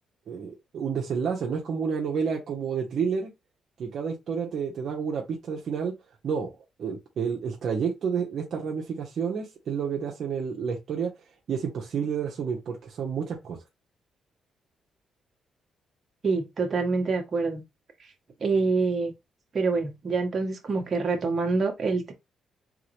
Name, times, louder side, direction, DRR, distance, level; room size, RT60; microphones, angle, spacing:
voice 1, 0.3-3.3 3.8-5.9 6.2-6.5 6.8-11.1 11.5-13.6, right 6 dB, 60° right, 1.1 m, -30 dB
voice 2, 16.2-17.6 18.4-19.1 19.5-22.1, right 4 dB, 45° right, 1.6 m, -26 dB
3.9 x 3.8 x 3.2 m
cardioid pair, 90°, 0 cm